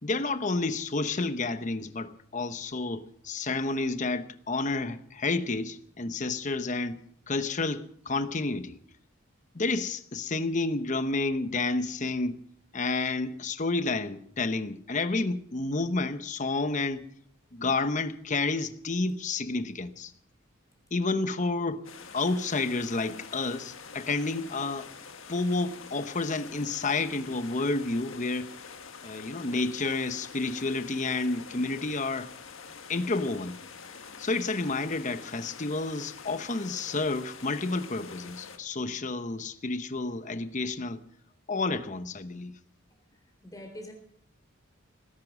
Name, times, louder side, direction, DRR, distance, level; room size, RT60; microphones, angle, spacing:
voice 1, 0.0-7.0 7.3-8.8 9.5-12.4 12.7-17.0 17.5-20.1 20.9-21.8 22.1-24.9 25.3-28.5 29.0-32.3 32.9-33.6 34.2-41.0 41.5-42.5, left 3 dB, 35° left, 12 dB, 0.9 m, -30 dB
sound 1, 21.8-38.6, left 6 dB, 70° left, 1.6 m, -46 dB
voice 2, 43.1-43.9, left 1 dB, 15° left, 4 dB, 3.7 m, -45 dB
18.5 x 11.0 x 6.3 m, 0.65 s
head